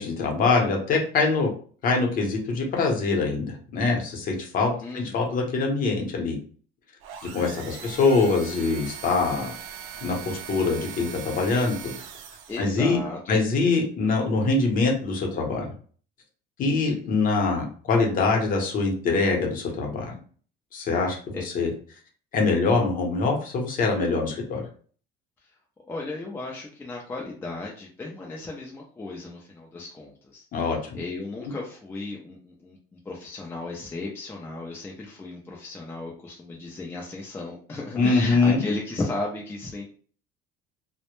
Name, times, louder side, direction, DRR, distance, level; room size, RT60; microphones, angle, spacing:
voice 1, 0.0-1.5 1.8-6.4 7.3-9.5 10.0-11.9 12.6-13.0 13.3-15.7 16.6-20.1 20.7-21.7 22.3-24.6 30.5-31.0 37.9-38.6, left 3 dB, 45° left, 1 dB, 0.7 m, -24 dB
voice 2, 4.7-5.2 7.1-7.3 7.6-7.9 12.5-13.4 16.9-17.0 21.3-21.5 25.4-25.5 25.9-30.4 30.9-39.8, left 2 dB, 10° left, -2 dB, 0.3 m, -35 dB
sound 1, 7.0-12.8, right 8 dB, 80° right, 0.4 m, -40 dB
2.0 x 2.0 x 2.9 m, 0.43 s
cardioid pair, 160°, 20 cm